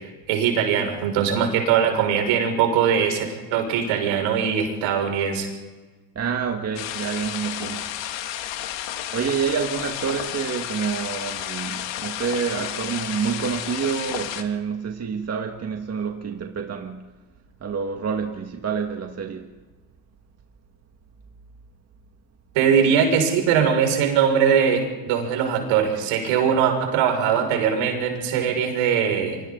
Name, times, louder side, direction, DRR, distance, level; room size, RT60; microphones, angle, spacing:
voice 1, 0.3-5.5 22.5-29.4, right 7 dB, 70° right, 6.3 m, -21 dB
voice 2, 6.2-7.9 9.1-17.1 17.6-19.5, right 6 dB, 30° right, 2.0 m, -28 dB
sound 1, 6.8-14.4, left 11 dB, 60° left, 2.1 m, -32 dB
28.0 x 24.5 x 4.0 m
supercardioid pair, 90°, 49 cm